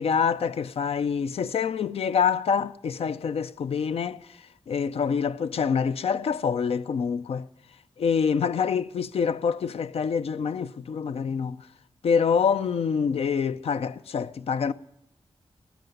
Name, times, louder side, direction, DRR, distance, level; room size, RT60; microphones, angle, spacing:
voice 1, 0.0-7.5 8.0-11.7 12.0-14.7, left 6 dB, 85° left, 0.5 m, -26 dB
16.5 x 13.5 x 5.3 m
wide cardioid pair, 90°, 10 cm